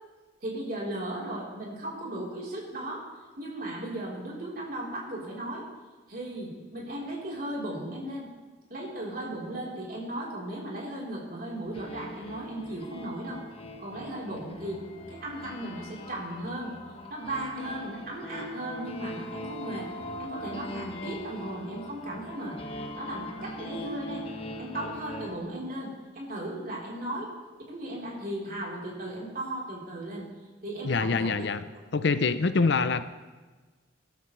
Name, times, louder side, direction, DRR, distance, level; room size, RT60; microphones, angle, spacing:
voice 1, 0.4-3.0 3.4-5.7 6.1-8.3 8.7-13.4 13.8-16.7 17.1-19.9 20.2-22.6 23.0-24.3 24.6-27.3 27.7-30.2 30.6-31.5, right 1 dB, 50° right, -4 dB, 4.0 m, -36 dB
sound 1, 11.7-25.4, left 1 dB, 30° left, 1.2 m, -41 dB
voice 2, 30.8-31.7 31.9-33.0, left 4 dB, 65° left, 12 dB, 0.6 m, -25 dB
22.0 x 12.5 x 3.3 m, 1.3 s
head